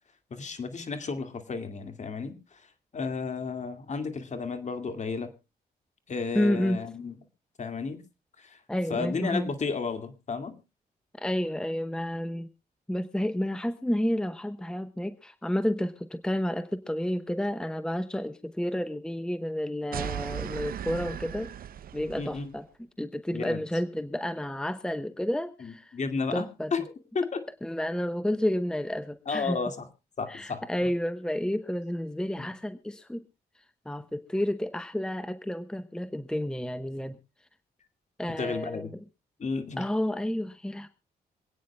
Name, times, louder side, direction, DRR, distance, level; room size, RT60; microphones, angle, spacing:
voice 1, 0.3-2.6 2.9-5.3 6.1-7.2 7.6-8.0 8.4-8.6 8.9-10.6 22.2-22.5 23.3-23.6 25.6-26.5 26.7-27.4 29.3-29.9 30.2-30.6 32.4-32.5 38.4-38.9 39.4-39.8, left 4 dB, 50° left, 8 dB, 2.2 m, -33 dB
voice 2, 6.3-6.8 8.7-9.5 11.2-12.5 12.9-21.5 21.9-22.7 23.0-25.9 26.3-26.7 27.6-29.6 30.3-33.2 33.9-37.2 38.2-38.9 39.8-40.9, left 1 dB, 5° left, 11 dB, 0.9 m, -30 dB
sound 1, 19.9-22.5, right 10 dB, 65° right, 0.6 m, -37 dB
26.5 x 9.3 x 2.3 m, 0.28 s
cardioid pair, 85°, 16 cm